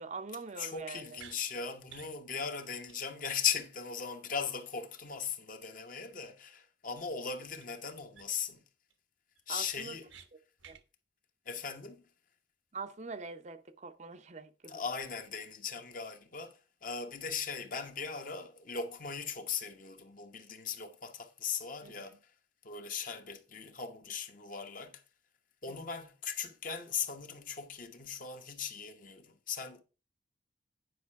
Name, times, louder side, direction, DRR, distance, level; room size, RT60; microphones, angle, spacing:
voice 1, 0.0-1.2 9.5-10.0 10.7-10.8 12.7-14.8 21.8-22.1 25.7-25.9, right 4 dB, 40° right, 0.6 m, -44 dB
voice 2, 0.6-8.6 9.5-10.1 11.5-12.0 14.7-16.5 16.8-22.1 22.6-24.9 25.6-29.8, left 6 dB, 45° left, 1.1 m, -38 dB
sound 1, 1.2-1.4 1.9-2.1 2.5-2.6 2.9-3.0 3.3-3.4 7.6-7.7 8.1-8.5 8.9-9.0 9.4-10.3 10.6-10.8, right 7 dB, 90° right, 1.2 m, -53 dB
9.4 x 5.4 x 4.6 m
head